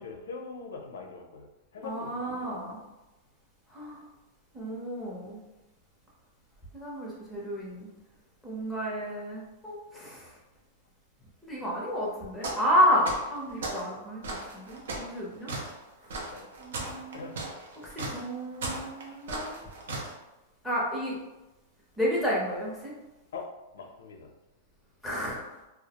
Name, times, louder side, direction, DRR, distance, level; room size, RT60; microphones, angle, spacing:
voice 1, 0.0-2.6 16.3-16.5 17.1-17.3 23.3-23.5 23.7-24.3, left 4 dB, 85° left, 3 dB, 0.4 m, -42 dB
voice 2, 1.8-2.8 3.7-4.0 4.5-5.4 6.7-7.9 8.4-10.3 11.4-15.5 16.6-17.4 17.8-19.6 20.6-21.2 22.0-22.9 25.0-25.5, equal, ahead, -6 dB, 0.6 m, -31 dB
sound 1, 12.4-12.7 13.0-13.9 14.2-20.1, right 2 dB, 85° right, 0.6 m, -36 dB
2.3 x 2.0 x 2.8 m, 1.0 s
supercardioid pair, 170°, 0 cm